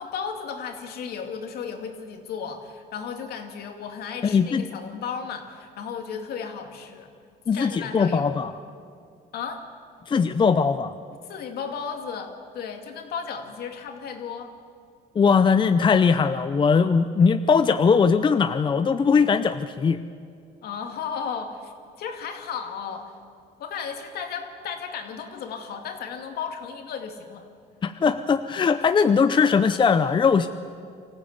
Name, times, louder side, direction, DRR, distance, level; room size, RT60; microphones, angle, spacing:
voice 1, 0.0-7.1 7.5-8.4 9.3-9.6 11.3-14.5 20.6-21.7 22.0-23.1 23.6-27.5, left 6 dB, 70° left, 5 dB, 2.4 m, -34 dB
voice 2, 4.2-4.6 7.5-8.5 10.1-10.9 15.2-20.0 27.8-30.5, left 5 dB, 30° left, 10 dB, 0.6 m, -20 dB
24.5 x 15.0 x 8.2 m, 2.3 s
cardioid pair, 110°, 17 cm